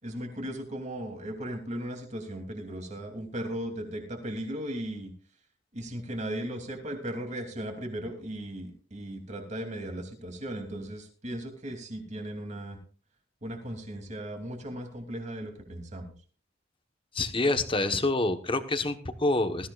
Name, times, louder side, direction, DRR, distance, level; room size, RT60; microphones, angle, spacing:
voice 1, 0.0-5.1 5.7-12.8 13.4-16.1, right 1 dB, 40° right, 4 dB, 2.9 m, -37 dB
voice 2, 17.1-19.7, left 2 dB, 30° left, 9 dB, 1.1 m, -27 dB
19.5 x 14.0 x 2.4 m, 0.38 s
head